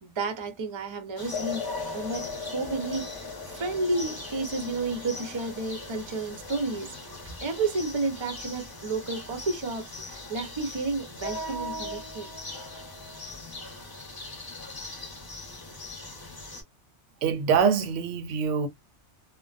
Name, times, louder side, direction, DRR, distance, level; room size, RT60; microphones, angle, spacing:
voice 1, 0.0-7.0 7.2-12.3, right 3 dB, 40° right, 0.4 m, -31 dB
sound 1, 1.2-16.6, left 1 dB, 25° left, 0.6 m, -40 dB
sound 2, 1.3-8.3, left 5 dB, 75° left, 1.0 m, -40 dB
voice 2, 17.2-18.7, right 6 dB, 85° right, 0.9 m, -24 dB
2.4 x 2.2 x 2.3 m
omnidirectional pair, 1.2 m